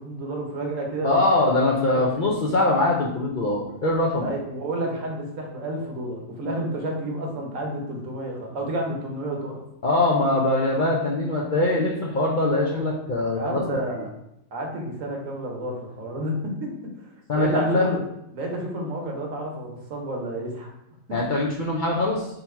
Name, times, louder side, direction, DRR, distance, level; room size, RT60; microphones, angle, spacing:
voice 1, 0.0-1.2 1.9-2.3 4.2-9.6 13.2-14.1 14.5-16.7 17.0-18.0 18.3-20.7 21.1-21.2, right 1 dB, 75° right, 0 dB, 1.3 m, -30 dB
voice 2, 1.0-4.3 9.8-13.6 17.3-17.9 21.1-22.3, left 2 dB, 50° left, -3 dB, 0.6 m, -22 dB
3.8 x 2.8 x 4.3 m, 0.81 s
omnidirectional pair, 1.4 m